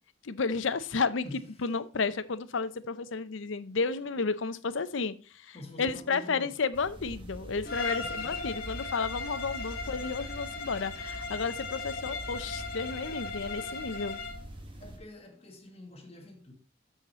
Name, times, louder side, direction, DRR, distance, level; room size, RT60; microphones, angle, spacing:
voice 1, 0.2-1.3 1.6-5.1 5.4-14.2, left 4 dB, 80° left, 0.6 m, -32 dB
voice 2, 1.2-1.7 5.5-6.6 8.0-8.4 14.8-16.5, left 2 dB, 30° left, 1.5 m, -47 dB
sound 1, 6.7-15.0, equal, 25° right, 1.3 m, -44 dB
Bowed string instrument, 7.6-14.4, left 4 dB, 50° left, 1.3 m, -37 dB
7.2 x 6.4 x 4.1 m
head